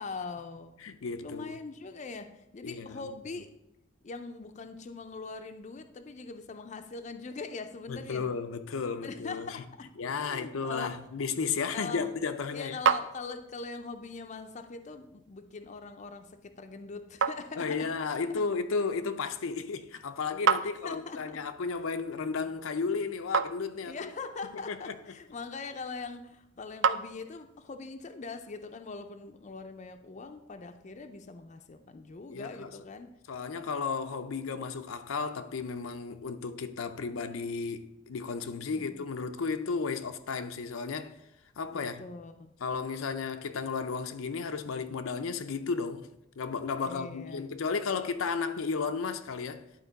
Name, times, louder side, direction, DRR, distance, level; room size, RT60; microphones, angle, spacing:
voice 1, 0.0-0.7 1.2-3.5 4.0-8.3 9.0-11.0 11.7-12.1 12.5-17.9 20.6-21.4 23.8-33.1 38.8-39.1 41.7-42.5 46.8-47.5, left 4 dB, 35° left, 0.4 m, -42 dB
voice 2, 0.8-1.5 2.6-3.1 7.9-9.6 10.0-12.8 17.6-24.1 24.7-24.9 32.3-32.7 33.3-41.1 41.6-42.0 42.6-46.1 46.4-49.6, left 5 dB, 90° left, 0.5 m, -33 dB
sound 1, 11.9-27.7, right 6 dB, 60° right, 0.3 m, -36 dB
11.0 x 4.4 x 4.0 m
head